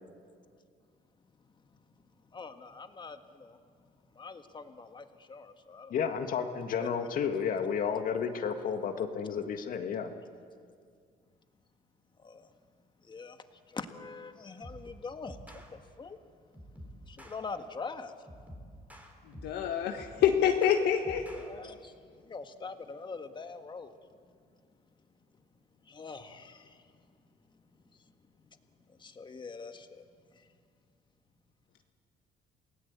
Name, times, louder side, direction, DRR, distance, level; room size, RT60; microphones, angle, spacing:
voice 1, 1.4-5.9 6.8-7.1 12.2-12.5 13.0-16.2 17.0-18.2 21.4-24.0 25.8-27.2 27.8-28.1 28.9-30.5, left 4 dB, 25° left, 7 dB, 1.7 m, -45 dB
voice 2, 5.9-10.1, left 7 dB, 55° left, 6 dB, 1.8 m, -32 dB
sound 1, 14.6-14.9 15.3-15.7 16.5-17.4 18.3-19.6 20.0-21.5, equal, 10° right, 3.9 m, -48 dB
voice 3, 19.2-21.2, left 9 dB, 80° left, 3 dB, 1.6 m, -27 dB
28.5 x 18.5 x 8.3 m, 2.2 s
cardioid pair, 110°, 17 cm